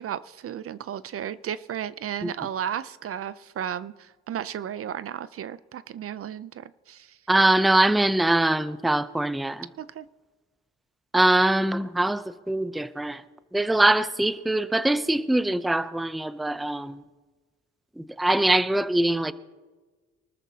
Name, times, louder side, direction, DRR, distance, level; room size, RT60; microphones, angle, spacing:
voice 1, 0.0-7.2 9.8-10.1, right 9 dB, 50° right, 0.5 m, -34 dB
voice 2, 7.3-9.7 11.1-13.2 13.5-17.0 18.0-19.3, right 1 dB, ahead, 0.5 m, -23 dB
24.5 x 13.5 x 2.8 m
cardioid pair, 90°, 30 cm